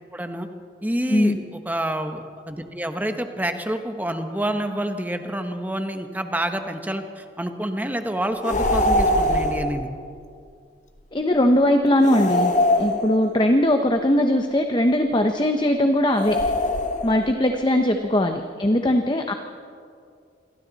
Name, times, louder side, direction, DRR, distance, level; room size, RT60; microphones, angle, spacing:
voice 1, 0.1-0.5 0.8-9.9, right 1 dB, 10° right, 6 dB, 1.1 m, -28 dB
sound 1, 8.4-9.8 12.0-13.4 16.1-17.3, left 1 dB, 40° left, 1.4 m, -22 dB
voice 2, 11.1-12.5 12.8-16.4 17.0-19.3, left 1 dB, 25° left, 5 dB, 0.8 m, -20 dB
28.0 x 22.5 x 4.1 m, 2.3 s
head